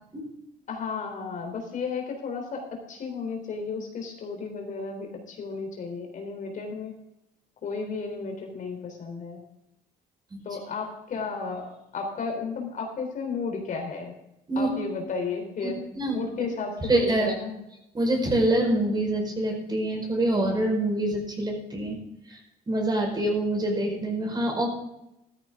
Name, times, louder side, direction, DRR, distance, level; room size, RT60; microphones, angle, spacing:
voice 1, 0.7-7.0 7.6-9.4 10.4-14.1 14.6-17.6, left 4 dB, 50° left, 3 dB, 3.8 m, -33 dB
voice 2, 15.6-16.3 16.9-17.3 17.9-22.0 22.3-22.4 22.7-24.7, right 1 dB, 25° right, 2 dB, 5.1 m, -25 dB
14.0 x 13.5 x 3.8 m, 0.85 s
cardioid pair, 110°, 17 cm